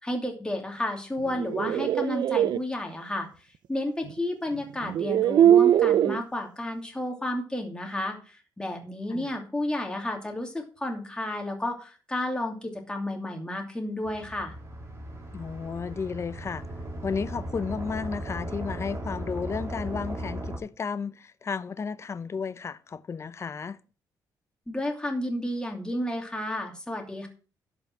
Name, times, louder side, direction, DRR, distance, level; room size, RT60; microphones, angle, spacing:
voice 1, 0.0-3.3 3.7-14.5 24.7-27.3, left 1 dB, 10° left, 2.6 m, -32 dB
sound 1, 1.3-2.6 4.1-4.2 4.8-6.2, right 10 dB, 70° right, 0.5 m, -21 dB
sound 2, 14.0-20.6, right 1 dB, 35° right, 3.1 m, -37 dB
voice 2, 15.3-16.6 17.0-23.8, left 5 dB, 35° left, 0.7 m, -33 dB
11.5 x 5.5 x 6.0 m
cardioid pair, 120°, 8 cm